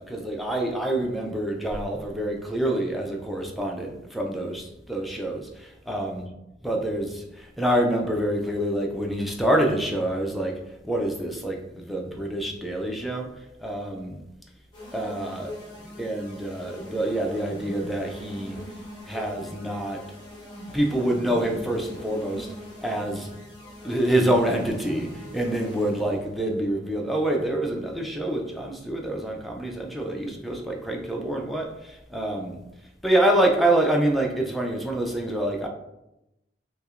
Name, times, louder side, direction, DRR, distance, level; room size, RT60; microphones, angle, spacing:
voice 1, 0.0-6.3 6.6-10.5 10.8-13.3 13.6-14.2 14.9-15.5 16.0-18.6 19.1-20.0 20.7-22.5 22.8-23.3 23.8-32.6 33.0-35.7, right 1 dB, ahead, 0 dB, 0.4 m, -26 dB
sound 1, 14.7-26.3, left 1 dB, 25° left, 0.9 m, -41 dB
5.6 x 2.1 x 2.4 m, 0.91 s
head